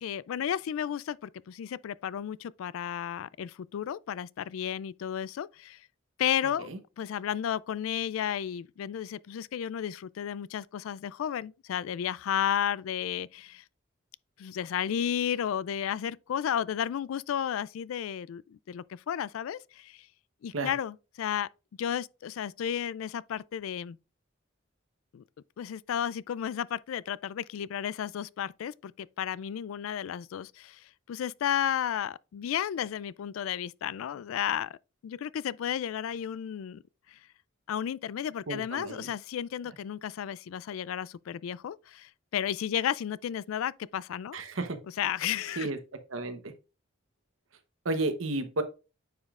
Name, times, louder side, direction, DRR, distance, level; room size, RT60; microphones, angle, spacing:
voice 1, 0.0-5.8 6.2-6.7 7.0-13.6 14.4-20.1 20.4-21.5 21.8-24.0 25.1-25.2 25.6-34.8 35.0-36.8 37.1-37.2 37.7-44.4 45.0-45.7, left 9 dB, 85° left, 0.3 m, -33 dB
voice 2, 38.5-39.1 44.3-44.8 45.6-45.8 46.1-46.5 47.8-48.6, right 2 dB, 75° right, 1.0 m, -32 dB
9.3 x 5.1 x 2.4 m
head